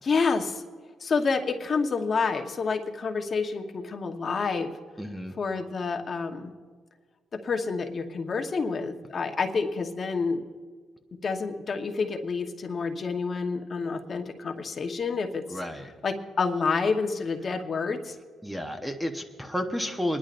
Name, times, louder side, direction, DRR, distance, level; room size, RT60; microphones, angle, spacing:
voice 1, 0.0-0.6 1.0-4.7 5.4-6.5 7.4-10.4 11.2-15.6 16.0-18.1, left 4 dB, 45° left, 4 dB, 1.1 m, -28 dB
voice 2, 5.0-5.3 15.5-15.9 18.4-20.2, equal, ahead, 5 dB, 0.9 m, -31 dB
25.5 x 10.5 x 2.5 m, 1.5 s
cardioid pair, 90°, 0 cm